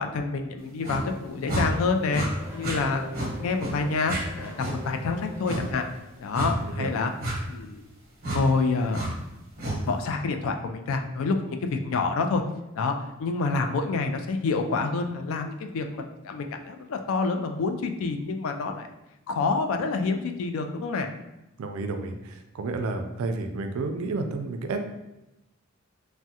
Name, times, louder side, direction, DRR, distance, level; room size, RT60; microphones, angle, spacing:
voice 1, 0.0-5.8 6.2-7.1 7.5-7.8 8.2-9.0 9.6-12.4 12.8-12.9 13.2-18.9 19.3-21.1, left 4 dB, 70° left, 5 dB, 0.3 m, -28 dB
sound 1, 0.8-1.0 1.5-1.7 2.1-2.3 2.6-2.8 3.1-3.3 3.6-3.7 4.0-4.2 4.6-4.8 5.4-5.6 6.3-6.5 7.2-7.4 8.2-8.4 8.9-9.1 9.6-9.8, right 1 dB, 45° right, 0.8 m, -30 dB
Race car auto racing / Accelerating revving vroom, 1.3-6.7, left 1 dB, 10° right, 0.5 m, -45 dB
voice 2, 6.4-6.9 21.6-24.8, right 3 dB, 70° right, 7 dB, 0.4 m, -31 dB
3.5 x 2.1 x 2.7 m, 0.94 s
head